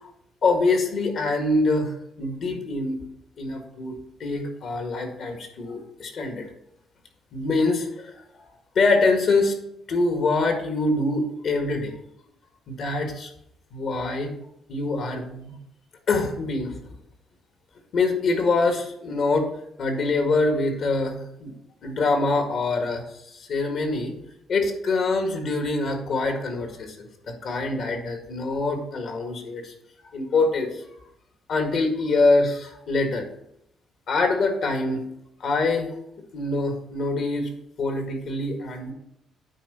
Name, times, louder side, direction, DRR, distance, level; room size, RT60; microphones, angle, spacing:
voice 1, 0.4-3.0 3.4-4.0 4.2-6.5 7.3-8.1 8.8-9.5 9.9-11.9 12.7-13.3 13.7-14.3 14.7-15.5 16.1-16.9 17.9-19.5 19.8-21.5 21.8-23.0 23.3-24.1 24.5-29.7 30.1-30.8 31.5-33.3 34.1-35.0 35.4-35.9 36.3-37.5 37.8-38.9, left 3 dB, 65° left, 4 dB, 1.9 m, -24 dB
9.0 x 4.5 x 5.4 m, 0.79 s
cardioid pair, 90°, 0 cm